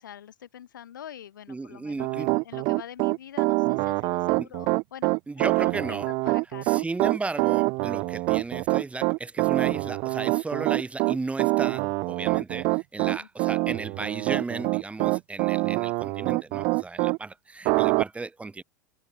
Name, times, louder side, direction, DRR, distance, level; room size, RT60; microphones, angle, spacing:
voice 1, 0.0-6.8 13.0-13.3, left 10 dB, 85° left, 2.6 m, -45 dB
voice 2, 1.5-2.3 4.4-4.5 5.3-6.1 6.6-18.6, right 3 dB, 10° right, 3.8 m, -35 dB
Piano, 2.0-17.2 17.6-18.0, right 26 dB, 50° right, 0.7 m, -25 dB
hypercardioid pair, 100°, 10 cm